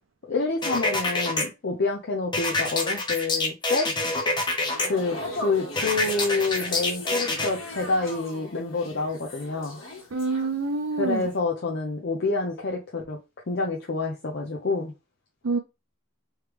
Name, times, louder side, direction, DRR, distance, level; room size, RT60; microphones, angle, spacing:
voice 1, 0.3-3.9 4.8-9.8 11.0-13.2 13.5-14.9, left 3 dB, 60° left, 0.7 m, -28 dB
sound 1, 0.6-1.4 2.3-4.9 5.8-7.5, left 2 dB, 25° left, 0.8 m, -26 dB
sound 2, 4.6-10.8 11.1-11.4, left 2 dB, 80° left, 1.5 m, -38 dB
voice 2, 10.1-11.3 15.4-15.6, right 3 dB, 80° right, 0.5 m, -26 dB
3.2 x 3.2 x 3.4 m
head